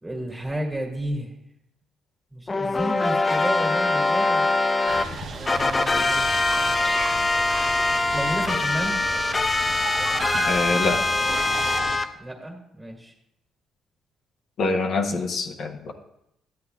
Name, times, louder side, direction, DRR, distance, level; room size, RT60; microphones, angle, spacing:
voice 1, 0.0-1.3 2.3-4.5 5.3-6.2 8.1-9.0 12.2-13.1, right 1 dB, 15° right, 1 dB, 1.8 m, -32 dB
sound 1, 2.5-5.0 5.5-12.0, left 2 dB, 25° left, 0.4 m, -23 dB
sound 2, 4.9-12.0, right 3 dB, 65° right, 0.9 m, -34 dB
voice 2, 10.3-11.0 14.6-15.9, left 3 dB, 65° left, 2 dB, 0.8 m, -25 dB
11.5 x 8.4 x 2.3 m, 0.80 s
cardioid pair, 90°, 0 cm